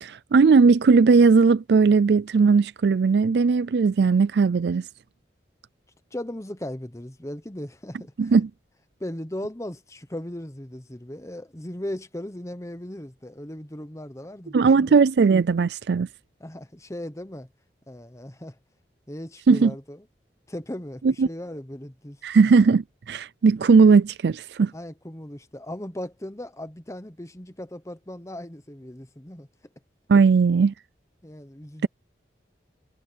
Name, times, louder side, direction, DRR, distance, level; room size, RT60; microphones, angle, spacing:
voice 1, 0.0-4.8 8.2-8.5 14.5-16.1 19.5-19.7 21.0-21.3 22.2-24.7 30.1-30.7, right 4 dB, 65° right, 0.4 m, -18 dB
voice 2, 6.1-8.3 9.0-15.0 16.4-17.5 17.9-18.6 19.1-20.0 20.5-22.2 24.7-29.5 31.2-31.9, left 1 dB, 15° left, 1.0 m, -37 dB
head